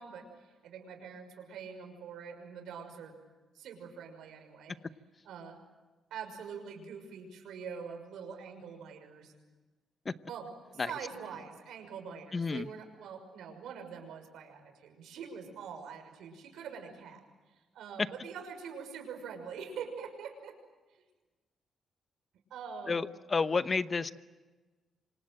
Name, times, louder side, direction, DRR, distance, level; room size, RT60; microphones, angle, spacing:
voice 1, 0.0-3.1 3.5-4.8 5.2-5.6 6.1-9.3 10.3-17.2 17.5-20.6 20.9-21.0 22.5-23.1, right 6 dB, 90° right, 5 dB, 6.0 m, -44 dB
voice 2, 12.3-12.7 22.9-24.1, left 4 dB, 30° left, 13 dB, 0.9 m, -30 dB
28.5 x 26.0 x 7.8 m, 1.3 s
cardioid pair, 120°, 0 cm